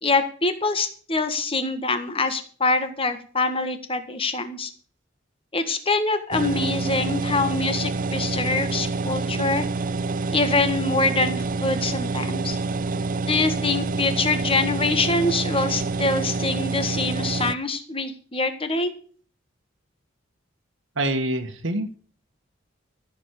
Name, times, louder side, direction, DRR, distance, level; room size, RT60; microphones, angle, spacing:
voice 1, 0.0-4.7 5.5-9.7 10.3-12.6 13.3-18.9, left 3 dB, 30° left, 9 dB, 1.8 m, -24 dB
sound 1, 6.3-17.5, right 3 dB, 45° right, 0.5 m, -27 dB
voice 2, 21.0-22.0, right 1 dB, 80° right, 3 dB, 1.9 m, -26 dB
14.5 x 7.6 x 6.7 m, 0.43 s
head